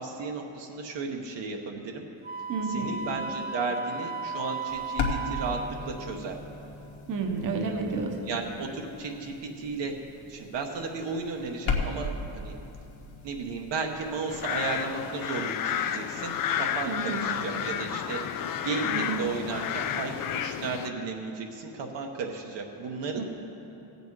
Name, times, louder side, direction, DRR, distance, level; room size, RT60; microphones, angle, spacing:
voice 1, 0.0-2.0 2.7-6.4 8.2-9.9 10.3-12.6 13.2-23.2, right 4 dB, 60° right, 2 dB, 1.0 m, -34 dB
Wind instrument woodwind instrument, 2.2-5.8, right 4 dB, 20° right, 0.5 m, -35 dB
voice 2, 2.5-2.9 7.1-8.2 16.9-17.2 18.8-19.3 23.1-23.2, right 4 dB, 40° right, 3 dB, 1.0 m, -30 dB
sound 1, 4.7-14.9, left 4 dB, 75° left, 1.6 m, -37 dB
sound 2, 14.3-20.9, left 9 dB, 45° left, 0.4 m, -31 dB
16.0 x 8.1 x 4.7 m, 3.0 s
cardioid pair, 150°, 47 cm